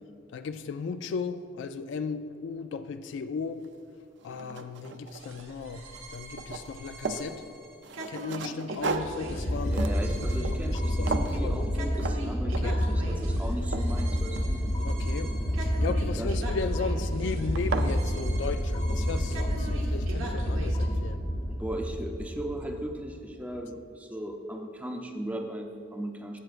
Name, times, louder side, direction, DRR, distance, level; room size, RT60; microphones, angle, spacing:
voice 1, 0.3-3.7 4.2-7.4 8.1-9.8 10.2-11.7 12.6-12.8 14.8-21.2, left 5 dB, 65° left, 0.3 m, -36 dB
sound 1, 3.6-3.7 4.2-5.6 5.9-7.3 7.8-10.8 11.1-11.4 12.0-12.2 12.5-12.9 13.3-14.9 16.4-16.8 17.2-17.3 17.5-17.9, right 4 dB, 60° right, 0.4 m, -35 dB
sound 2, 5.1-20.8, right 1 dB, 85° right, 1.2 m, -43 dB
sound 3, 8.9-23.0, equal, 25° left, 0.8 m, -29 dB
voice 2, 9.7-14.6 16.2-16.3 21.5-26.4, right 1 dB, 5° right, 0.5 m, -37 dB
13.5 x 7.8 x 2.5 m
head